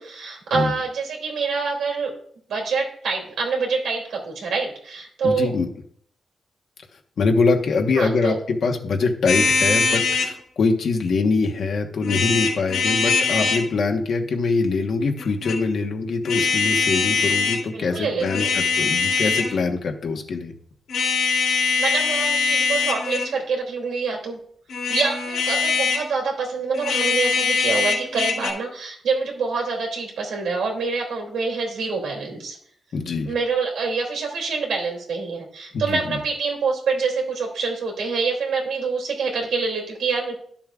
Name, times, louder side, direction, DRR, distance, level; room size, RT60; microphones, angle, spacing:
voice 1, 0.0-2.1 2.5-5.5 7.9-8.4 17.7-18.5 21.8-24.4 24.9-32.6 33.2-40.3, right 4 dB, 80° right, 0 dB, 2.8 m, -26 dB
voice 2, 5.2-5.7 7.2-20.5 32.9-33.3 35.7-36.2, left 4 dB, 55° left, 2 dB, 1.3 m, -23 dB
sound 1, 9.3-10.3 12.0-13.7 15.2-15.6 16.2-17.6 18.2-19.6 20.9-23.3 24.7-26.1 26.7-28.5, left 4 dB, 80° left, 2.8 m, -22 dB
13.0 x 7.1 x 2.5 m, 0.62 s
wide cardioid pair, 140°, 0 cm